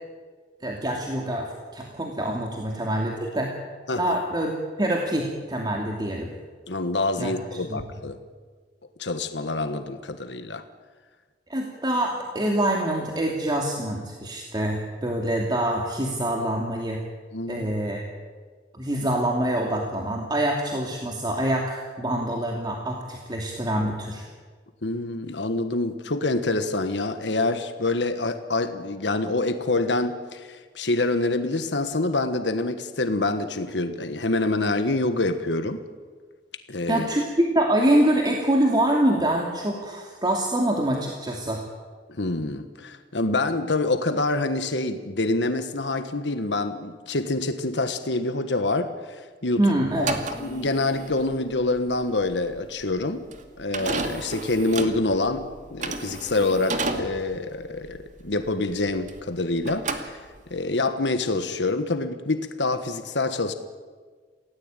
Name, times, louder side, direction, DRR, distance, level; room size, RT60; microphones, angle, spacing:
voice 1, 0.6-3.5 4.0-6.3 7.2-7.3 7.7-7.8 11.5-17.0 17.5-18.0 18.7-24.3 36.9-41.6 49.6-50.2, right 1 dB, 25° right, 0 dB, 2.7 m, -25 dB
voice 2, 6.7-8.2 9.0-10.6 17.3-17.7 24.8-35.8 36.7-37.1 42.1-49.6 50.0-53.3 53.6-63.5, left 2 dB, 75° left, 9 dB, 1.5 m, -26 dB
sound 1, 49.9-59.4 59.6-60.6, right 3 dB, 45° right, 2.4 m, -33 dB
28.0 x 17.5 x 9.1 m, 1.5 s
head